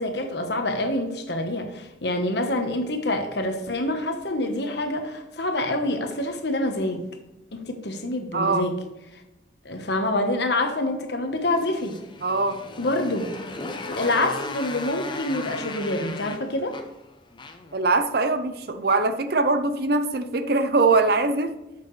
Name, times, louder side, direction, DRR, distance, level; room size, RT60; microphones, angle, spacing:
voice 1, 0.0-7.0 7.5-8.7 9.6-11.9 12.8-13.3 13.9-16.8, left 1 dB, 60° left, 5 dB, 1.2 m, -26 dB
voice 2, 8.3-8.7 12.2-12.6 17.7-21.6, right 3 dB, 55° right, 10 dB, 0.7 m, -22 dB
Motorcycle, 11.5-17.8, left 3 dB, 25° left, 0.7 m, -36 dB
11.5 x 6.7 x 3.3 m, 0.98 s
head